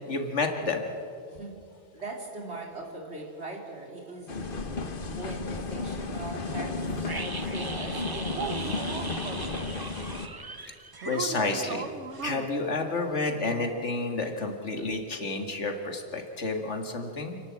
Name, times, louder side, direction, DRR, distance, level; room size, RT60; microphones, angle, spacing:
voice 1, 0.1-0.8 10.6-10.7 11.1-11.9 12.2-17.4, left 3 dB, 90° left, 4 dB, 2.3 m, -30 dB
voice 2, 1.3-9.8, right 2 dB, 70° right, 0 dB, 3.7 m, -41 dB
sound 1, 4.3-10.3, left 3 dB, 50° left, 1.4 m, -33 dB
sound 2, 7.0-11.9 12.1-12.2, right 3 dB, 25° right, 0.7 m, -39 dB
sound 3, 7.9-9.2 11.0-12.5, right 7 dB, 85° right, 1.2 m, -37 dB
29.0 x 11.5 x 8.7 m, 2.4 s
omnidirectional pair, 1.2 m